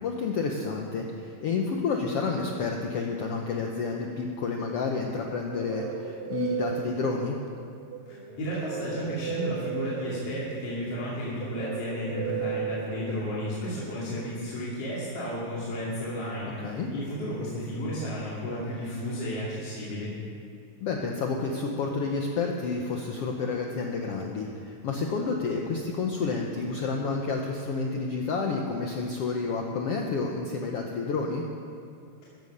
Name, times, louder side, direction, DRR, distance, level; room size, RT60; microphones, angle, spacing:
voice 1, 0.0-7.4 16.6-16.9 20.8-31.4, left 4 dB, 85° left, 1 dB, 1.3 m, -30 dB
sound 1, 5.2-13.9, right 9 dB, 80° right, 2.8 m, -36 dB
voice 2, 8.1-20.1, equal, 45° left, -8 dB, 3.4 m, -33 dB
14.5 x 13.5 x 5.4 m, 2.5 s
omnidirectional pair, 4.0 m